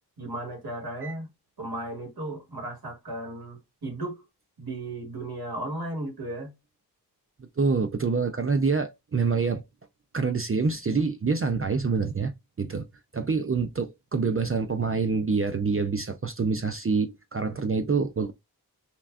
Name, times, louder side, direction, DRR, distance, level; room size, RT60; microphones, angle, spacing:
voice 1, 0.2-1.3 1.6-4.2 4.6-6.5, right 1 dB, 65° right, 2.1 m, -35 dB
voice 2, 7.6-9.6 10.1-12.3 12.6-12.9 13.1-18.3, right 4 dB, 35° right, 0.5 m, -26 dB
5.7 x 2.3 x 2.5 m
wide cardioid pair, 60°, 40 cm